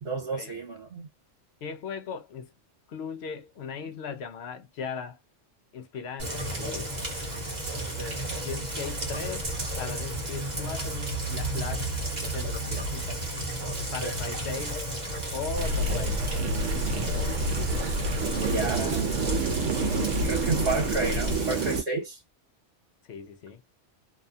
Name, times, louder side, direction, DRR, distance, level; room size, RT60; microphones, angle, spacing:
voice 1, 0.0-1.1 14.0-14.2 18.4-19.1 19.7-22.2, right 4 dB, 60° right, 1.2 m, -31 dB
voice 2, 1.6-2.5 2.9-5.2 5.7-6.9 7.9-9.5 9.8-11.9 12.2-13.2 13.9-14.8 15.3-16.3 23.1-23.6, left 6 dB, 65° left, 0.8 m, -38 dB
Rain, 6.2-21.8, right 1 dB, 40° right, 1.0 m, -33 dB
sound 1, 15.6-21.8, right 2 dB, 85° right, 1.0 m, -28 dB
2.7 x 2.2 x 2.5 m
omnidirectional pair, 1.2 m